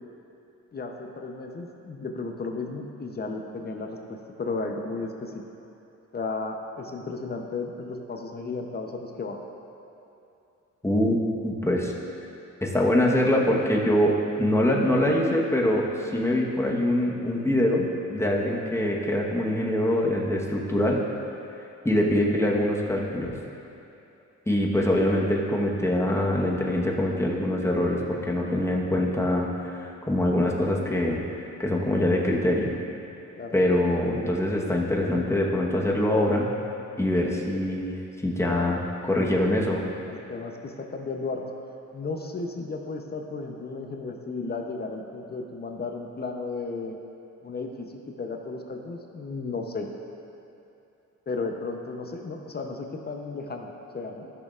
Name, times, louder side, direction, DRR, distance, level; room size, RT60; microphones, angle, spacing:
voice 1, 0.7-5.3 6.1-9.4 33.4-33.5 38.4-38.7 39.1-39.6 40.1-41.4 41.9-47.0 47.4-49.9 51.3-54.3, left 3 dB, 35° left, 3 dB, 0.8 m, -34 dB
voice 2, 10.8-11.9 12.6-21.0 21.8-23.3 24.5-32.7 33.5-36.5 37.0-37.9 38.2-38.8 39.1-39.8, left 1 dB, 10° left, -2 dB, 1.2 m, -24 dB
13.5 x 6.5 x 2.5 m, 2.8 s
cardioid pair, 90°, 30 cm